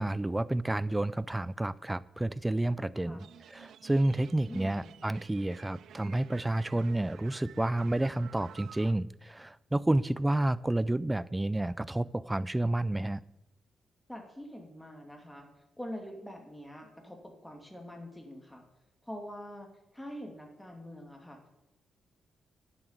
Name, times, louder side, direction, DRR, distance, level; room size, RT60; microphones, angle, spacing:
voice 1, 0.0-13.2, right 1 dB, 10° right, 0.4 m, -30 dB
sound 1, 3.2-8.9, right 10 dB, 75° right, 0.3 m, -52 dB
voice 2, 4.5-4.9 14.1-15.5 15.8-18.6 19.0-19.7 19.9-21.4, equal, 5° left, 2.5 m, -44 dB
10.5 x 7.3 x 8.1 m
cardioid pair, 105°, 0 cm